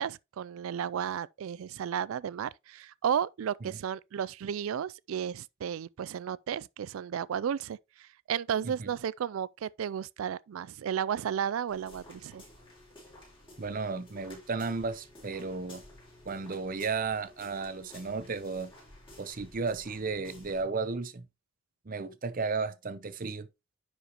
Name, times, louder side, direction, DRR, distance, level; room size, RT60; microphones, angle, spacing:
voice 1, 0.0-12.4, right 8 dB, 80° right, 0.3 m, -33 dB
sound 1, 11.7-20.6, left 1 dB, 25° left, 4.5 m, -53 dB
voice 2, 13.6-15.8 16.2-18.7 19.2-21.3 21.9-23.5, right 4 dB, 45° right, 0.7 m, -34 dB
9.9 x 5.0 x 3.0 m
head